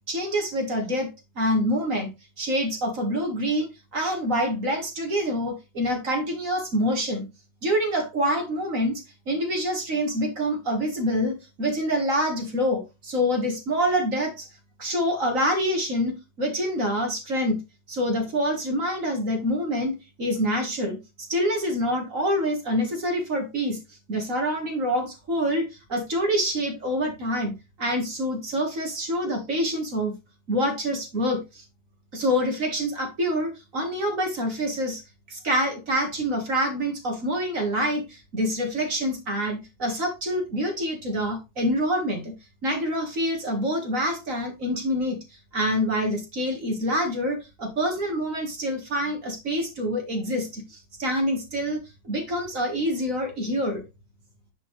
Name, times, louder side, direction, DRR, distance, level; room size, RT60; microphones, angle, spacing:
voice 1, 0.1-1.1 1.4-2.1 2.4-7.3 7.6-14.5 14.8-17.6 17.9-23.8 24.1-27.5 27.8-30.2 30.5-31.6 32.1-35.0 35.3-42.3 42.6-51.8 52.0-53.8, equal, 50° right, 2.0 m, -26 dB
10.0 x 4.3 x 3.2 m
omnidirectional pair, 1.9 m